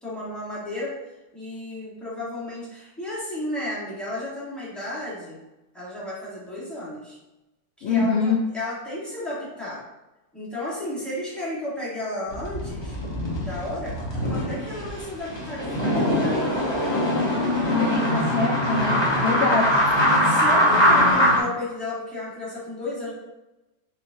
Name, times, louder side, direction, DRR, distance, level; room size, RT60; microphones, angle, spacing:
voice 1, 0.0-0.9 1.3-5.4 5.7-7.2 7.8-9.8 10.3-12.9 13.4-13.9 14.3-16.8 19.1-19.6 20.0-23.1, left 1 dB, ahead, -8 dB, 1.1 m, -33 dB
voice 2, 7.8-8.4 17.6-19.7, left 4 dB, 70° left, -2 dB, 0.6 m, -24 dB
sound 1, 12.3-21.4, equal, 20° left, 0.8 m, -22 dB
4.3 x 3.7 x 2.6 m, 1.0 s
omnidirectional pair, 1.8 m